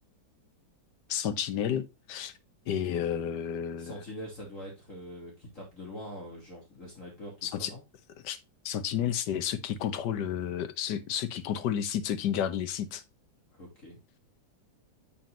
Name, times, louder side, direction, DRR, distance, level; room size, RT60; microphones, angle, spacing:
voice 1, 1.1-2.3 2.7-3.9 7.4-7.7 8.2-8.4 8.6-13.0, left 9 dB, 65° left, 1.4 m, -31 dB
voice 2, 3.8-7.8 13.5-14.0, equal, 40° left, 2.8 m, -43 dB
7.5 x 7.3 x 2.5 m
omnidirectional pair, 2.1 m